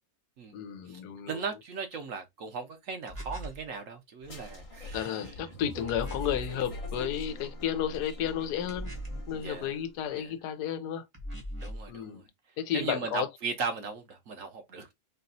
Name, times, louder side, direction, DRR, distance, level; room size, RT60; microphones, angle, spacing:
voice 1, 0.5-1.4 4.9-8.9 9.3-11.0 11.9-12.2 12.6-13.3, left 9 dB, 90° left, 1.2 m, -32 dB
voice 2, 1.3-5.3 9.3-9.7 10.1-10.3 11.6-12.2 12.7-14.9, right 5 dB, 60° right, 1.2 m, -37 dB
sound 1, 3.1-3.6 5.9-6.5 8.7-9.3 11.1-11.9, equal, 25° right, 0.9 m, -39 dB
sound 2, 4.2-9.8, left 1 dB, 30° left, 0.7 m, -43 dB
4.2 x 2.9 x 2.6 m
omnidirectional pair, 1.7 m